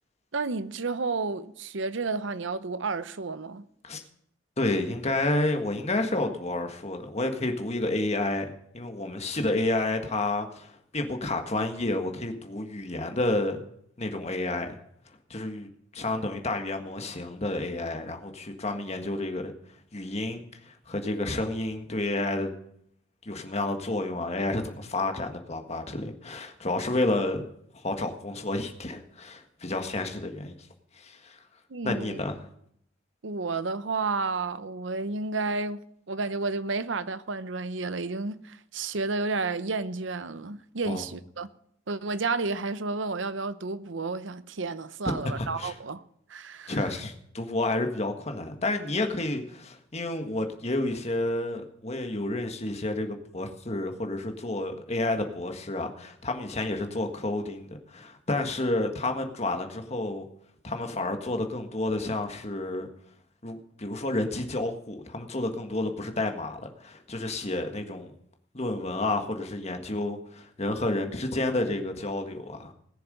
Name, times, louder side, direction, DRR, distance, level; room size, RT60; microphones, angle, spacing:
voice 1, 0.3-3.6 31.7-32.2 33.2-35.8 36.1-41.5 41.9-46.0 46.3-46.8, right 3 dB, 70° right, 0.8 m, -31 dB
voice 2, 4.6-8.5 8.7-13.6 14.0-14.8 15.3-15.7 15.9-19.5 19.9-22.5 23.3-27.5 27.7-30.5 31.0-31.4 31.8-32.5 40.9-41.1 45.0-45.7 46.7-60.2 60.6-62.9 63.4-68.1 68.5-72.7, left 2 dB, 35° left, 1.6 m, -30 dB
20.0 x 7.0 x 5.4 m
head